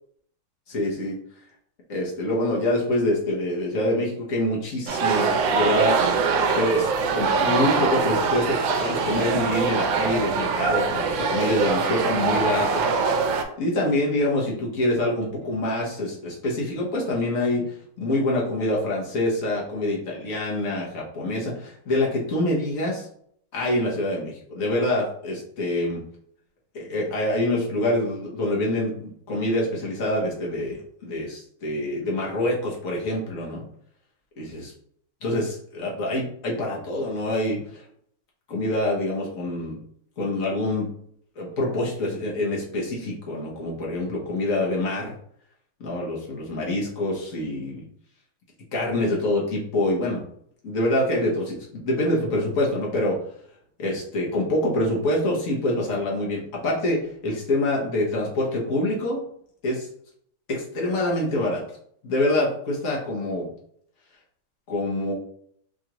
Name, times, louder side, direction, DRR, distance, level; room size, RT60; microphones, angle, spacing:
voice 1, 0.7-1.1 1.9-6.0 6.6-12.8 13.6-23.1 23.5-26.0 26.7-33.6 34.4-34.7 35.2-37.8 38.5-39.8 40.2-40.9 41.4-45.1 45.8-47.8 48.7-50.2 50.6-53.2 53.8-59.2 59.6-59.9 60.5-61.6 62.0-63.5 64.7-65.1, left 1 dB, 50° left, -3 dB, 1.2 m, -26 dB
sound 1, 4.9-13.4, right 5 dB, 85° right, 1.3 m, -23 dB
4.7 x 2.4 x 2.9 m, 0.65 s
omnidirectional pair, 2.0 m